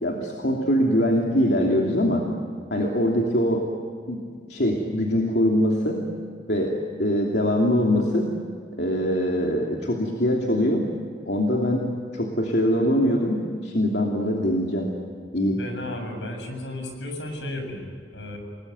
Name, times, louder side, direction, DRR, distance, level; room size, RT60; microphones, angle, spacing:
voice 1, 0.0-2.2 2.7-3.6 4.1-4.2 4.5-6.0 6.5-6.7 7.0-8.3 8.8-10.8 11.3-11.8 12.1-14.9 15.3-15.6, equal, 65° left, -1 dB, 2.9 m, -22 dB
voice 2, 15.5-18.4, left 1 dB, 85° left, 4 dB, 7.2 m, -34 dB
29.5 x 20.0 x 9.5 m, 2.1 s
head